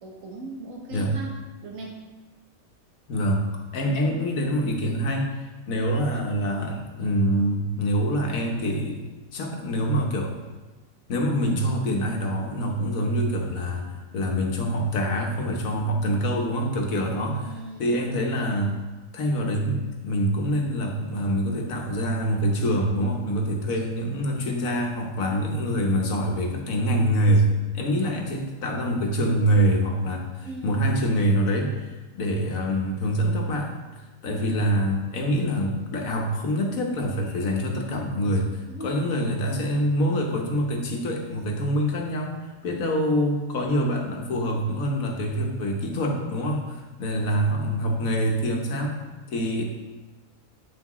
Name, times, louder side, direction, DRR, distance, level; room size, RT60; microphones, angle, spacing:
voice 1, 0.0-2.0 17.1-18.1 30.4-31.1 38.7-39.1 47.0-47.9, right 1 dB, 75° right, 0 dB, 1.5 m, -39 dB
voice 2, 3.1-3.4 3.7-5.3 5.7-9.0 9.3-10.3 11.1-18.8 19.1-27.5 27.7-49.0 49.3-49.6, equal, 75° left, 1 dB, 1.4 m, -25 dB
8.1 x 5.9 x 3.1 m, 1.2 s
omnidirectional pair, 1.4 m